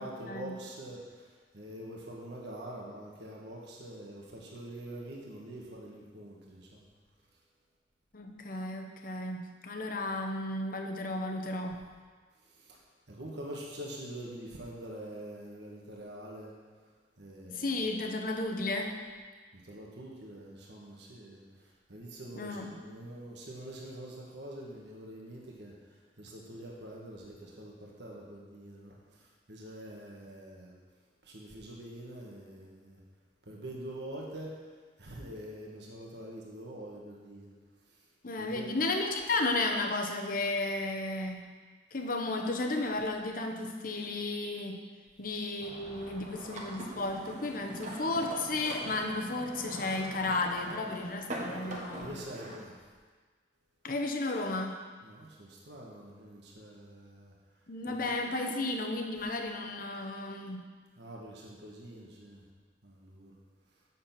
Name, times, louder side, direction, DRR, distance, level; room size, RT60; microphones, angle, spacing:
voice 1, 0.0-6.9 12.5-12.8 13.1-16.5 17.2-17.8 19.5-21.4 21.9-25.7 26.2-30.7 31.2-33.0 33.4-34.5 35.0-37.5 38.4-38.7 51.9-52.8 55.0-57.3 57.9-58.2 61.0-62.4 62.8-63.3, right 1 dB, 65° right, -3 dB, 1.6 m, -45 dB
voice 2, 8.1-11.9 17.5-19.0 22.3-22.8 38.2-41.6 41.9-44.8 45.2-52.1 53.8-54.8 57.7-60.6, left 2 dB, 50° left, 3 dB, 0.9 m, -33 dB
sound 1, 45.6-52.6, right 1 dB, 40° right, 1.3 m, -43 dB
7.5 x 7.0 x 5.9 m, 1.5 s
head